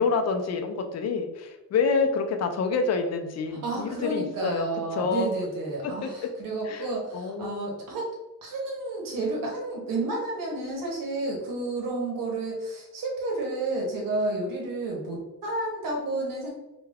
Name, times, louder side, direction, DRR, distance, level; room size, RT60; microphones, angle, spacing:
voice 1, 0.0-4.7 5.0-5.3 6.0-6.1 6.7-6.9 7.1-7.7, left 4 dB, 50° left, 5 dB, 0.4 m, -27 dB
voice 2, 3.5-8.1 8.4-16.5, right 2 dB, 70° right, -1 dB, 0.8 m, -31 dB
2.3 x 2.2 x 3.3 m, 0.97 s
wide cardioid pair, 140°, 34 cm